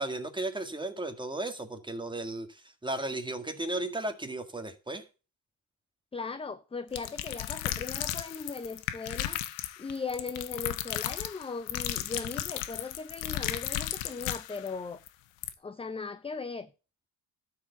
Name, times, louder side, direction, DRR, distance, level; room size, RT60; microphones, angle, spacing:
voice 1, 0.0-5.0, right 2 dB, 10° right, 1.8 m, -35 dB
voice 2, 6.1-9.4 9.8-15.0 15.6-16.7, left 4 dB, 15° left, 0.6 m, -38 dB
sound 1, 6.9-14.7 15.1-15.2 15.4-15.5, left 13 dB, 85° left, 1.1 m, -35 dB
12.5 x 4.8 x 7.0 m
supercardioid pair, 85°, 44 cm